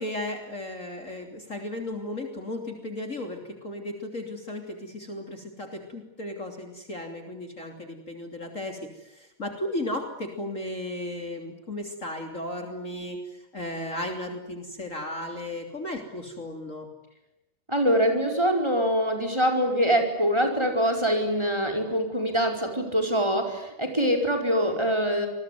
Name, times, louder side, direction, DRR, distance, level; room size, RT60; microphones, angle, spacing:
voice 1, 0.0-16.9, left 1 dB, 35° left, 4 dB, 3.6 m, -35 dB
voice 2, 17.7-25.3, equal, 10° right, 5 dB, 5.0 m, -24 dB
27.5 x 22.5 x 9.6 m, 0.92 s
omnidirectional pair, 2.3 m